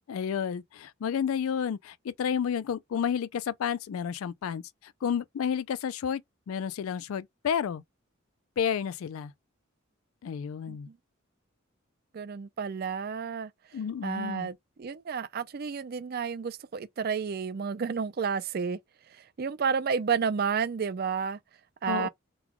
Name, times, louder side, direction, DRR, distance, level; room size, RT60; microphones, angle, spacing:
voice 1, 0.1-6.2 6.5-7.8 8.6-9.3 10.2-10.9 13.7-14.5 21.9-22.1, left 7 dB, 85° left, 0.3 m, -31 dB
voice 2, 10.7-11.0 12.1-13.5 14.0-18.8 19.4-21.4 21.8-22.1, right 6 dB, 45° right, 0.4 m, -31 dB
3.9 x 2.2 x 2.9 m
head